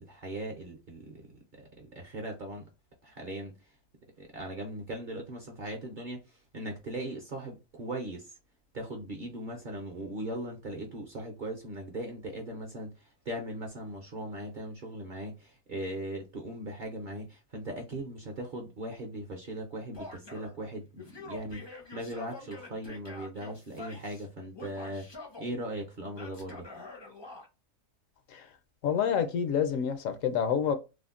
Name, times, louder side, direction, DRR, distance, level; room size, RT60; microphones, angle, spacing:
voice 1, 0.0-2.7 3.0-3.6 4.2-8.4 8.7-26.7, right 1 dB, 50° right, 0.6 m, -39 dB
Male speech man speaking / Yell, 19.9-20.6 21.0-24.3 24.5-25.5 26.1-27.5, left 3 dB, 35° left, 0.4 m, -46 dB
voice 2, 28.8-30.8, left 8 dB, 75° left, 0.9 m, -28 dB
3.4 x 2.1 x 2.4 m
omnidirectional pair, 1.5 m